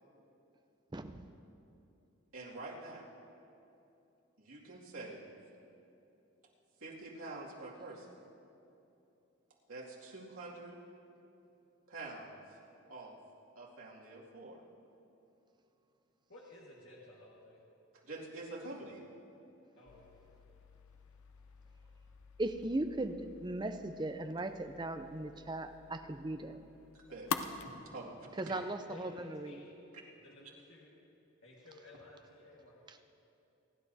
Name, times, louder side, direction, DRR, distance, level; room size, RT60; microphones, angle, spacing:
voice 1, 2.3-3.1 4.4-5.3 6.8-8.1 9.7-10.7 11.9-12.4 12.9-13.2 13.6-14.6 18.0-19.0 26.9-28.4, right 2 dB, 85° right, -4 dB, 2.3 m, -47 dB
voice 2, 16.3-17.6 19.8-20.2 28.9-29.9 30.2-31.0 31.4-32.8, left 2 dB, 65° left, -5 dB, 1.7 m, -55 dB
sound 1, 19.9-27.7, left 6 dB, 85° left, 0.6 m, -46 dB
voice 3, 22.4-26.6 28.4-29.6 32.9-33.0, right 2 dB, 20° right, 7 dB, 0.5 m, -38 dB
28.0 x 11.0 x 2.7 m, 2.8 s
head